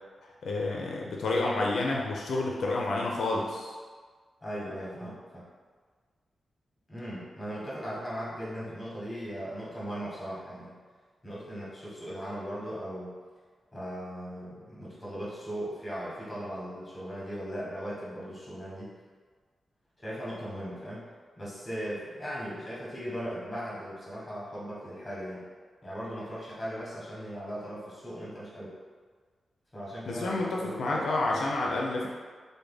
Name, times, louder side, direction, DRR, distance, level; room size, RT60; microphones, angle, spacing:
voice 1, 0.4-3.7 30.1-32.1, left 2 dB, 75° left, -2 dB, 0.4 m, -29 dB
voice 2, 4.4-5.5 6.9-10.8 11.2-13.1 13.7-18.9 20.0-21.1 21.4-25.5 25.8-28.7 29.7-31.0 31.9-32.1, equal, 15° left, -7 dB, 0.9 m, -38 dB
3.3 x 2.1 x 3.4 m, 1.5 s
wide cardioid pair, 175°, 0 cm